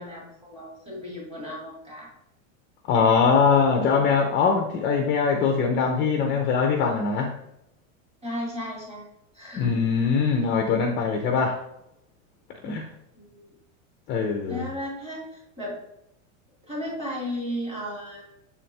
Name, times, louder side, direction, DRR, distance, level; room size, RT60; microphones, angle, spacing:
voice 1, 0.0-2.1 8.2-9.1 9.3-9.7 13.2-13.5 14.5-15.8 16.6-18.2, equal, 15° right, -3 dB, 2.2 m, -34 dB
voice 2, 2.9-7.3 9.6-11.6 12.6-12.9 14.1-14.7, left 5 dB, 25° left, 3 dB, 0.6 m, -22 dB
7.1 x 4.2 x 3.3 m, 0.81 s
supercardioid pair, 145°, 40 cm